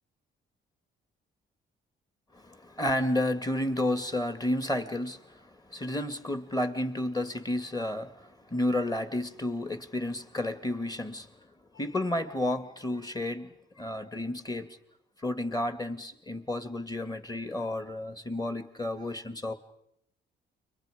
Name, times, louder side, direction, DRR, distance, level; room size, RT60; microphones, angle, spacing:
voice 1, 2.3-11.3 11.7-14.8 15.2-19.5, left 1 dB, 20° left, 10 dB, 2.2 m, -31 dB
29.5 x 23.5 x 5.2 m, 0.76 s
cardioid pair, 90°, 20 cm